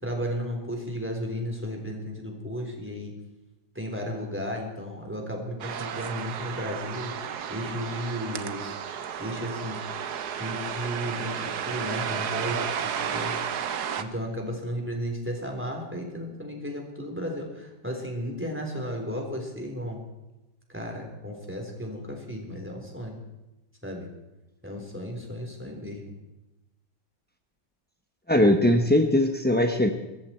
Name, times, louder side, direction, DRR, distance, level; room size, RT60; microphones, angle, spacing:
voice 1, 0.0-3.1 3.8-8.8 9.2-9.8 10.4-13.4 14.0-20.0 20.7-23.2 23.8-24.1 24.6-26.1, equal, 5° right, 1 dB, 3.6 m, -34 dB
sound 1, 5.6-14.0, right 8 dB, 65° right, 1.4 m, -32 dB
voice 2, 28.3-29.9, left 1 dB, 10° left, 5 dB, 0.4 m, -20 dB
22.5 x 14.0 x 4.4 m, 1.0 s
omnidirectional pair, 1.9 m